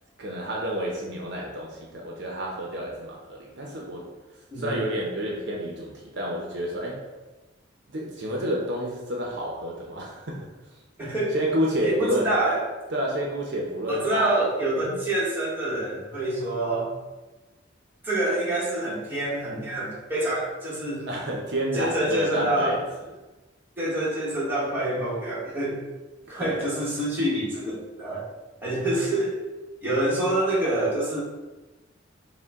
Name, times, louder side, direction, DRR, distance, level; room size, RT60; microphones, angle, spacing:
voice 1, 0.2-4.1 4.6-7.0 7.9-10.4 11.3-12.3 12.9-14.5 14.8-15.0 21.1-22.8 26.3-26.7, equal, 60° right, -2 dB, 0.7 m, -29 dB
voice 2, 11.0-11.3 11.8-12.6 13.9-16.9 18.0-21.1 21.7-22.7 23.8-25.8 26.3-28.2 28.6-29.4 29.8-31.2, right 1 dB, 10° right, -8 dB, 1.2 m, -26 dB
5.3 x 2.2 x 3.5 m, 1.2 s
head